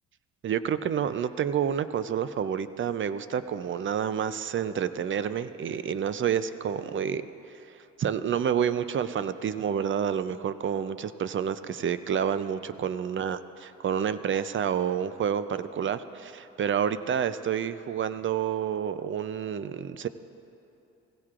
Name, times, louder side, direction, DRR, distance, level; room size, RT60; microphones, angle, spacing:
voice 1, 0.4-7.3 8.0-13.4 13.8-20.1, right 8 dB, 40° right, 13 dB, 0.5 m, -29 dB
16.5 x 16.5 x 2.5 m, 2.9 s
cardioid pair, 90°, 30 cm